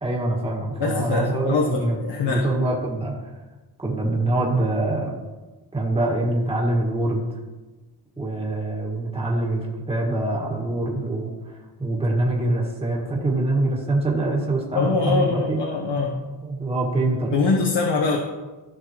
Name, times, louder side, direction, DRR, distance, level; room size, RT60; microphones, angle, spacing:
voice 1, 0.0-2.0 2.2-3.1 3.8-5.1 5.7-7.3 8.2-15.6 16.4-17.3, right 2 dB, 15° right, -3 dB, 1.8 m, -24 dB
voice 2, 0.8-2.4 14.7-16.2 17.3-18.2, left 4 dB, 70° left, 0 dB, 1.1 m, -23 dB
15.0 x 6.0 x 3.1 m, 1.2 s
wide cardioid pair, 135°, 44 cm